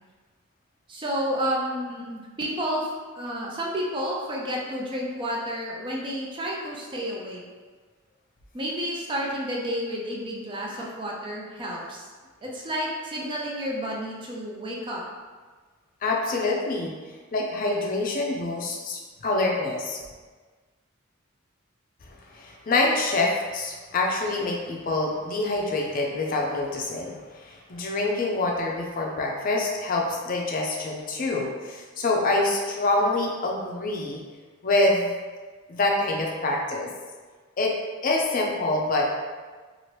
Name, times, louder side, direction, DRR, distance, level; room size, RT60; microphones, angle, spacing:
voice 1, 0.9-2.9 3.1-7.4 8.5-12.1 12.4-15.0, equal, 25° right, -2 dB, 0.4 m, -30 dB
voice 2, 16.0-16.9 17.3-20.0 22.3-34.2 34.6-35.1 35.7-36.9 37.6-37.7 38.0-39.0, left 2 dB, 45° left, -1 dB, 0.4 m, -26 dB
2.9 x 2.5 x 3.1 m, 1.4 s
head